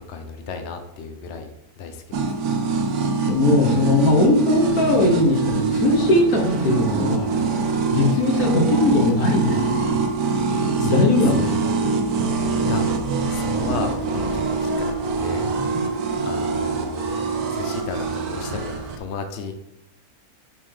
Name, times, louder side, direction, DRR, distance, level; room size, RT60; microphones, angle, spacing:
voice 1, 0.0-1.5 1.8-2.3 10.4-11.1 11.4-11.5 12.3-12.9 13.3-15.5 15.7-17.0 17.5-19.5, left 5 dB, 60° left, 6 dB, 0.8 m, -34 dB
sound 1, 2.1-19.0, right 4 dB, 90° right, 1.3 m, -24 dB
voice 2, 3.3-7.3 7.9-10.0 10.8-11.7, left 2 dB, 75° left, 2 dB, 1.6 m, -19 dB
5.4 x 3.7 x 4.9 m, 0.82 s
omnidirectional pair, 1.5 m